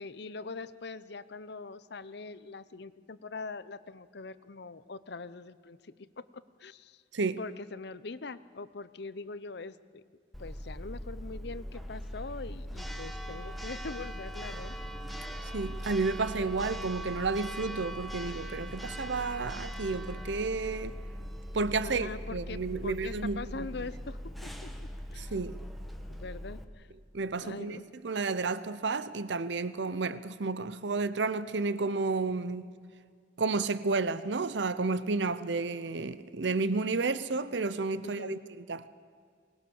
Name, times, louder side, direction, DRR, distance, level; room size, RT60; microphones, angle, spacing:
voice 1, 0.0-7.0 7.4-10.0 10.4-14.8 21.8-24.7 25.1-25.4 26.1-26.9 27.4-27.9 38.0-38.4, left 3 dB, 65° left, 0.8 m, -42 dB
Church bell, 10.3-26.6, equal, ahead, 1.3 m, -40 dB
voice 2, 15.5-20.9 21.5-23.7 25.2-25.6 27.1-32.8 33.4-38.4 38.7-38.8, right 3 dB, 70° right, 0.7 m, -31 dB
23.0 x 20.0 x 7.1 m
head